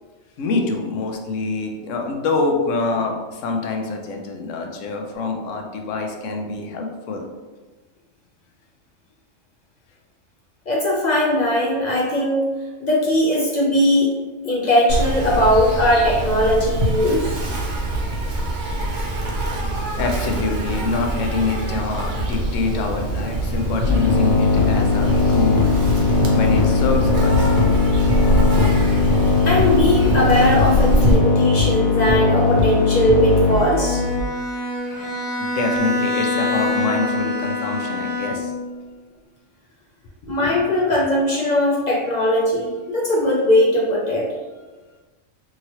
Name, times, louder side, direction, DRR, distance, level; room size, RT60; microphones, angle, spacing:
voice 1, 0.4-7.3 20.0-25.8 26.3-27.5 28.9-29.0 35.4-38.5 40.2-40.7, left 3 dB, 75° left, 2 dB, 0.9 m, -25 dB
voice 2, 10.7-12.5 12.8-14.1 14.4-17.4 28.6-28.7 29.4-34.0 40.3-44.3, left 1 dB, 50° left, -4 dB, 0.5 m, -19 dB
Insect, 14.9-31.1, right 1 dB, 60° right, 0.8 m, -24 dB
sound 1, 23.8-34.2, left 4 dB, 5° right, 0.4 m, -19 dB
Bowed string instrument, 33.4-38.7, left 2 dB, 35° left, 1.0 m, -26 dB
2.9 x 2.8 x 2.8 m, 1.3 s
omnidirectional pair, 1.3 m